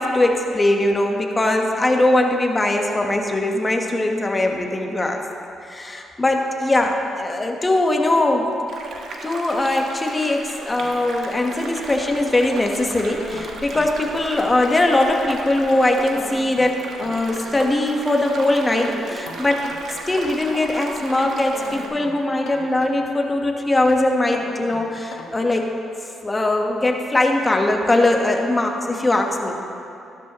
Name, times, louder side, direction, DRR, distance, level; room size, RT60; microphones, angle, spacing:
voice 1, 0.0-5.2 5.6-8.5 9.2-19.7 20.1-25.7 26.2-29.6, left 2 dB, 20° left, 2 dB, 1.3 m, -21 dB
sound 1, 8.7-21.9, right 3 dB, 65° right, 1.4 m, -36 dB
sound 2, 10.8-12.1 12.6-15.0 15.7-17.7 18.1-20.6 21.1-23.3 23.8-25.5, left 4 dB, 80° left, 1.7 m, -40 dB
14.5 x 12.5 x 3.0 m, 2.6 s
cardioid pair, 90°, 0 cm